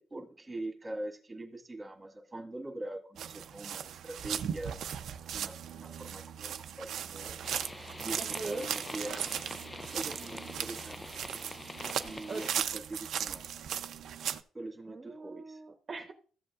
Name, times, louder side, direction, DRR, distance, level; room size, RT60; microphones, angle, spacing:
voice 1, 0.0-4.8 5.3-7.4 8.0-9.3 9.9-11.0 12.0-13.5 14.5-15.6, right 2 dB, 20° right, 3 dB, 1.8 m, -42 dB
sound 1, 3.2-14.4, right 9 dB, 70° right, 0.5 m, -37 dB
sound 2, 7.4-12.5, left 2 dB, 15° left, 0.4 m, -45 dB
voice 2, 8.2-8.7 11.7-11.9 12.3-12.4 14.9-16.1, right 3 dB, 40° right, 2 dB, 1.0 m, -41 dB
14.0 x 7.6 x 2.4 m, 0.41 s
cardioid pair, 90°, 0 cm